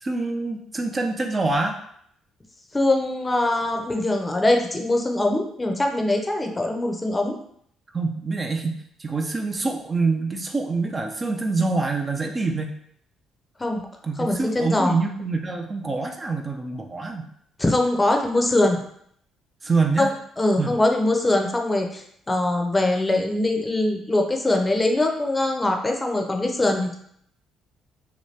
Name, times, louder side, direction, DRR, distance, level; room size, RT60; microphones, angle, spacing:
voice 1, 0.0-1.8 7.9-12.8 14.0-17.3 19.6-20.1 20.6-20.8, right 3 dB, 30° right, 3 dB, 0.4 m, -25 dB
voice 2, 2.7-7.4 13.6-13.8 14.2-14.9 17.6-18.8 20.0-20.1 20.4-22.0 22.3-27.0, left 2 dB, 20° left, 3 dB, 0.6 m, -22 dB
2.9 x 2.2 x 3.2 m, 0.68 s
supercardioid pair, 65°, 0 cm